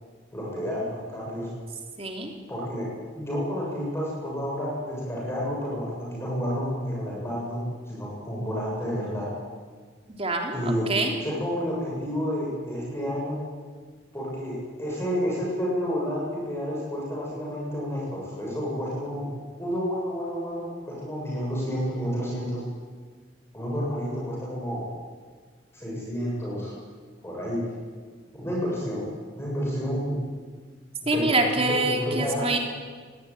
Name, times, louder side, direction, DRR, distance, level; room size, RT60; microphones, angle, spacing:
voice 1, 0.3-1.5 2.5-2.8 3.1-9.3 10.5-10.8 11.2-13.4 14.1-19.3 19.6-22.6 23.5-24.9 25.7-26.7 27.2-27.6 28.3-29.1 29.4-30.2 31.0-32.4, equal, 15° left, -5 dB, 8.0 m, -30 dB
voice 2, 2.0-2.3 10.2-11.1 31.1-32.6, right 2 dB, 35° right, 2 dB, 3.6 m, -25 dB
24.5 x 19.0 x 9.3 m, 1.5 s
head